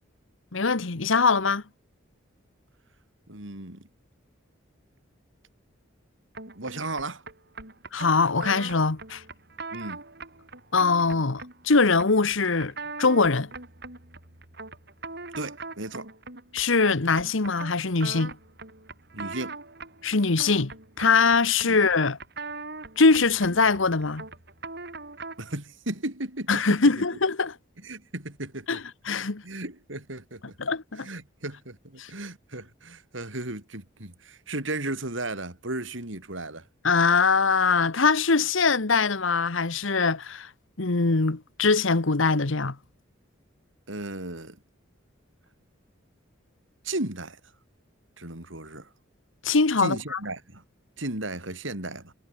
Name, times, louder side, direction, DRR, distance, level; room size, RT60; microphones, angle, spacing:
voice 1, 0.5-1.6 7.9-9.2 10.7-12.7 13.0-13.5 16.5-18.4 20.0-22.2 23.0-24.2 26.5-27.5 28.7-29.4 30.6-31.1 32.0-32.1 36.8-40.5 40.8-42.8 49.4-50.2, left 4 dB, 75° left, 1.2 m, -22 dB
voice 2, 3.3-3.9 6.5-7.2 9.7-10.0 15.3-16.1 19.1-19.6 21.7-21.8 25.4-26.6 27.8-28.8 29.4-30.4 31.0-36.6 43.9-44.6 46.8-47.4 48.2-48.9 49.8-50.6 51.0-52.1, right 2 dB, 70° right, 4.7 m, -35 dB
sound 1, 6.3-25.5, right 3 dB, 55° right, 7.5 m, -41 dB
head